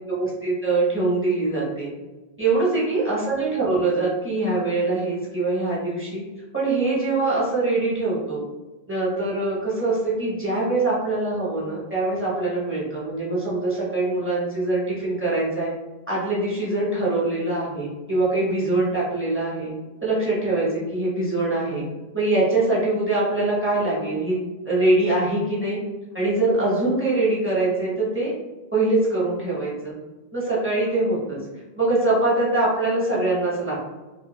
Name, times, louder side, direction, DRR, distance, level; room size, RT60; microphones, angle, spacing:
voice 1, 0.1-1.9 2.4-6.2 6.5-8.4 8.9-15.7 16.1-19.7 20.0-21.8 22.1-24.4 24.6-25.8 26.1-28.3 28.7-29.9 30.3-31.4 31.8-33.9, right 2 dB, 15° right, -7 dB, 0.7 m, -23 dB
2.4 x 2.2 x 2.9 m, 1.2 s
omnidirectional pair, 1.1 m